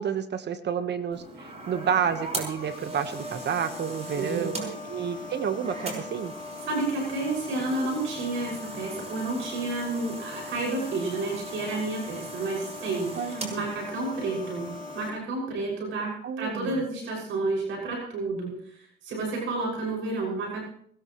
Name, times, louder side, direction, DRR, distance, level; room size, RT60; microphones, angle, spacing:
voice 1, 0.0-6.3 13.1-13.5 16.2-16.8, right 7 dB, 60° right, 9 dB, 1.3 m, -30 dB
sound 1, 1.1-15.1, left 1 dB, 35° right, 5.5 m, -38 dB
voice 2, 4.1-4.5 6.6-14.7 14.9-20.6, right 2 dB, 85° right, -2 dB, 6.3 m, -31 dB
20.0 x 19.0 x 3.2 m, 0.63 s
cardioid pair, 90°, 20 cm